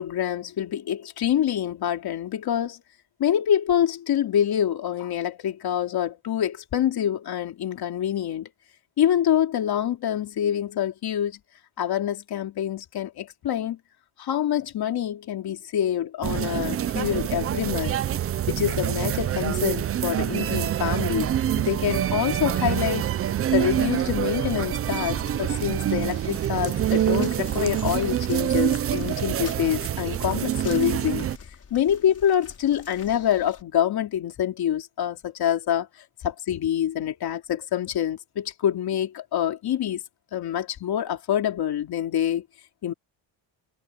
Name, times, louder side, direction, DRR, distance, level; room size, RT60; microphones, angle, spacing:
voice 1, 0.0-2.8 3.2-8.5 9.0-11.4 11.8-13.8 14.2-18.0 18.5-23.1 23.5-31.3 31.7-35.9 36.2-40.0 40.3-42.4 42.8-42.9, left 10 dB, 50° left, 3.1 m, -26 dB
sound 1, 16.2-31.4, right 11 dB, 30° right, 0.4 m, -26 dB
sound 2, 25.1-33.6, left 6 dB, 30° left, 5.9 m, -47 dB
cardioid pair, 170°, 47 cm